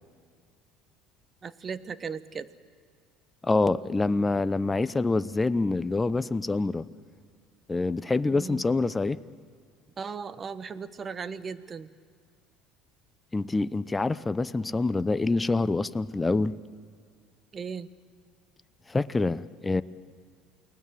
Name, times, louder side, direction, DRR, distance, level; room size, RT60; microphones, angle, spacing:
voice 1, 1.4-2.5 8.3-8.7 10.0-11.9 17.5-17.9, right 6 dB, 35° right, 14 dB, 1.1 m, -37 dB
voice 2, 3.4-6.9 7.7-9.2 13.3-16.5 18.9-19.8, left 3 dB, 15° left, 15 dB, 0.8 m, -26 dB
29.0 x 19.5 x 7.6 m, 2.1 s
supercardioid pair, 90°, 0 cm